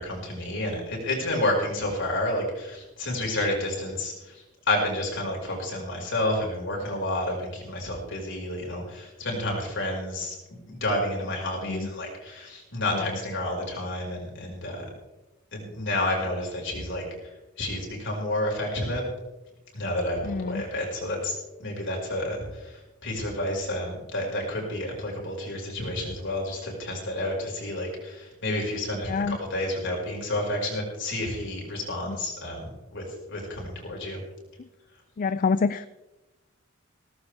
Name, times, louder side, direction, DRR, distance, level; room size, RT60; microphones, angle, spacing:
voice 1, 0.0-10.4 10.7-14.9 15.5-17.0 17.6-19.0 19.7-21.3 21.6-34.2, left 1 dB, 60° left, -1 dB, 5.4 m, -30 dB
voice 2, 20.2-20.6 29.1-29.4 34.6-34.7 35.2-35.9, left 4 dB, 40° left, 14 dB, 0.4 m, -27 dB
17.5 x 15.0 x 3.5 m, 1.0 s
head